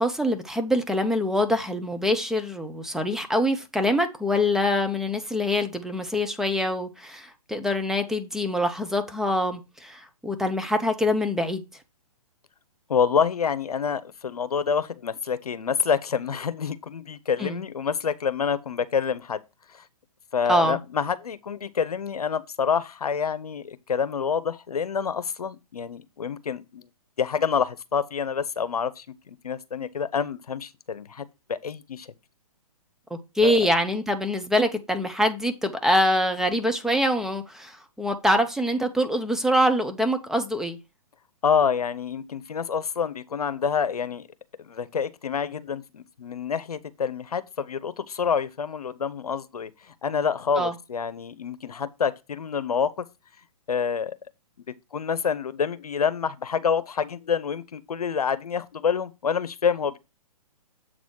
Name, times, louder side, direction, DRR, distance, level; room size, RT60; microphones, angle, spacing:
voice 1, 0.0-11.6 17.4-17.6 20.5-20.8 33.4-40.8 50.6-50.7, left 1 dB, ahead, 0.6 m, -24 dB
voice 2, 12.9-19.4 19.7-19.8 20.3-26.8 27.2-32.1 33.4-33.5 41.4-44.3 44.6-49.7 50.0-53.0 53.7-54.2 54.9-60.0, left 6 dB, 80° left, 0.8 m, -27 dB
7.7 x 4.1 x 4.6 m
hypercardioid pair, 135°, 19 cm